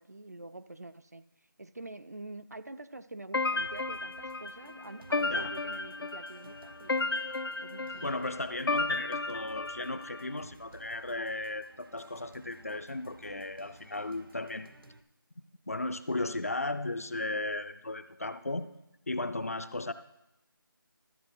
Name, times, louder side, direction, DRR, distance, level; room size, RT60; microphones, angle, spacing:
voice 1, 0.0-7.1 7.6-8.1, right 2 dB, 45° right, 13 dB, 0.4 m, -46 dB
sound 1, 3.3-10.3, left 3 dB, 90° left, 0.6 m, -33 dB
sound 2, 3.6-15.0, right 2 dB, 75° right, 0.8 m, -56 dB
voice 2, 8.0-14.7 15.7-18.7 19.1-19.9, left 2 dB, 40° left, 12 dB, 0.5 m, -35 dB
13.0 x 7.8 x 4.4 m, 0.88 s
figure-of-eight pair, 175°, 12 cm